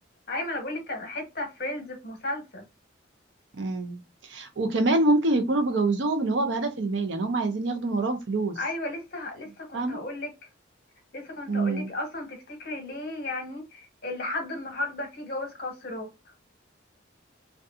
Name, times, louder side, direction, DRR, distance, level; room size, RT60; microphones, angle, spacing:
voice 1, 0.3-2.6 8.5-10.3 11.1-16.1, left 2 dB, 50° left, 0.9 m, -34 dB
voice 2, 3.5-8.6 9.7-10.0 11.5-11.9, right 2 dB, 65° right, 0.6 m, -26 dB
2.7 x 2.3 x 2.3 m
head